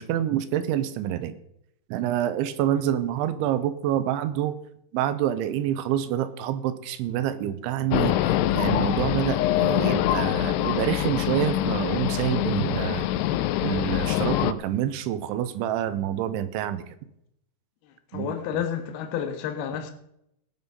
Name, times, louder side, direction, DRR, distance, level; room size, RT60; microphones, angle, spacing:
voice 1, 0.0-1.3 1.9-4.6 4.9-13.1 13.6-16.8 18.1-18.6, right 11 dB, 85° right, 3.2 m, -27 dB
sound 1, 7.9-14.5, left 13 dB, 85° left, 2.5 m, -24 dB
voice 2, 18.1-19.9, left 9 dB, 65° left, 3.0 m, -30 dB
19.0 x 7.2 x 5.5 m
omnidirectional pair, 5.4 m